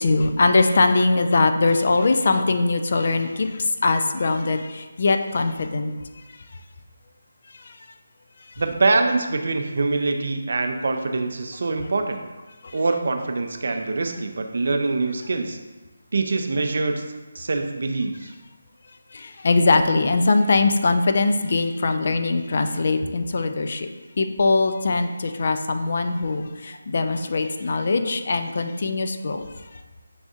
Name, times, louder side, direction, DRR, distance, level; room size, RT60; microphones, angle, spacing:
voice 1, 0.0-5.9 7.6-7.8 12.6-12.8 19.1-23.9 24.2-29.5, left 3 dB, 50° left, 7 dB, 0.3 m, -21 dB
voice 2, 8.6-12.2 12.7-15.6 16.1-17.0 17.3-18.3, right 3 dB, 60° right, 5 dB, 0.4 m, -24 dB
6.1 x 2.6 x 2.4 m, 1.2 s
figure-of-eight pair, 160°, 0 cm